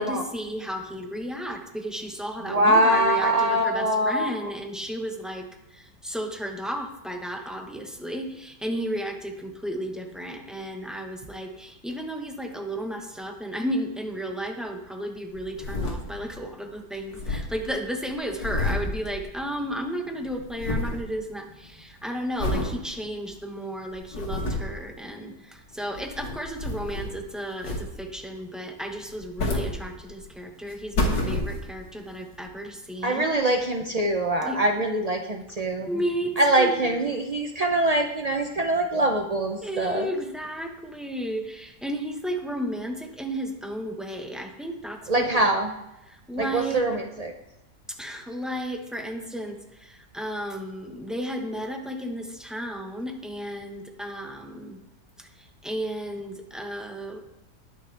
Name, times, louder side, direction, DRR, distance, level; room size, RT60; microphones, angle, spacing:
voice 1, 0.0-33.4 34.4-34.8 35.8-37.0 39.6-45.5 46.1-46.9 47.9-54.8 55.2-57.2, equal, ahead, 3 dB, 0.8 m, -33 dB
voice 2, 2.5-4.3 33.0-35.9 36.4-40.1 45.1-45.7 46.4-47.3, right 1 dB, 85° right, 3 dB, 0.3 m, -23 dB
sound 1, 15.3-16.5 16.7-16.8 17.0-19.8 20.0-21.1 21.5-21.8 22.4-22.8 23.3-23.4 23.9-24.8 25.8-27.2 27.6-28.2 29.0-30.3 30.7-31.9 32.5-32.6, left 2 dB, 90° left, 2.5 m, -30 dB
19.5 x 6.6 x 3.4 m, 0.94 s
omnidirectional pair, 1.8 m